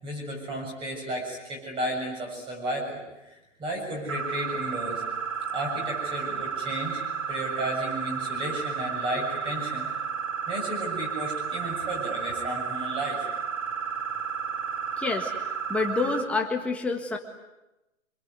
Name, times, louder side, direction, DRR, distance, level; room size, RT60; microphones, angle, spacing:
voice 1, 0.0-5.0 5.5-7.0 7.3-9.9 10.5-13.2, right 1 dB, 10° right, 2 dB, 7.1 m, -33 dB
sound 1, 4.1-16.2, right 7 dB, 70° right, 7.6 m, -32 dB
voice 2, 15.0-15.3 15.7-17.2, left 3 dB, 5° left, 1 dB, 1.7 m, -27 dB
27.5 x 22.5 x 9.6 m, 0.98 s
hypercardioid pair, 165°, 39 cm